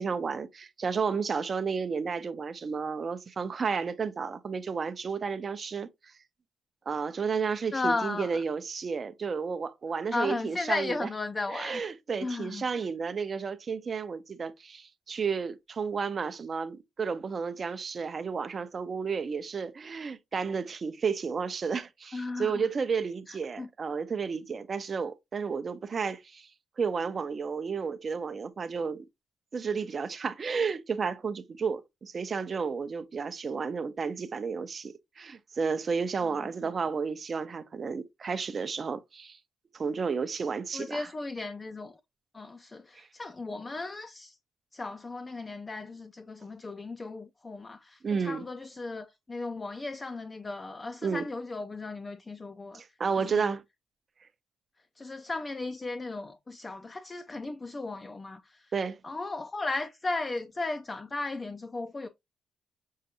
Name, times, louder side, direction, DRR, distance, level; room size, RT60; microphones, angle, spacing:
voice 1, 0.0-5.9 6.9-11.1 11.5-26.5 26.8-29.0 29.5-39.4 39.7-41.1 43.0-43.1 48.0-48.5 51.0-51.3 52.7-53.6 58.7-59.0, right 5 dB, 40° right, 0.6 m, -32 dB
voice 2, 7.7-8.4 10.1-11.8 12.2-12.6 22.1-22.6 23.3-23.7 36.6-36.7 40.7-42.0 42.3-44.4 44.7-52.8 53.2-53.5 55.0-58.7 59.0-62.1, left 3 dB, 25° left, 0.5 m, -35 dB
6.5 x 2.5 x 2.8 m
cardioid pair, 90°, 0 cm